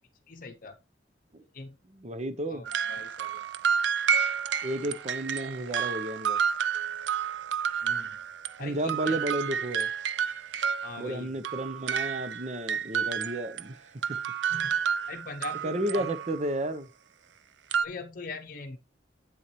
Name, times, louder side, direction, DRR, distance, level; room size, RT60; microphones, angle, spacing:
voice 1, 0.3-0.8 1.5-1.8 2.5-3.4 7.8-8.2 8.6-9.2 10.8-11.3 14.5-16.0 17.8-18.8, left 3 dB, 50° left, 0.8 m, -42 dB
voice 2, 1.9-2.7 4.6-6.4 8.6-9.9 11.0-14.2 15.6-16.9, right 1 dB, 40° right, 0.8 m, -32 dB
sound 1, 2.6-8.6 8.9-13.6 14.0-16.5 17.7-17.9, right 7 dB, 85° right, 0.6 m, -30 dB
8.8 x 7.0 x 3.1 m
head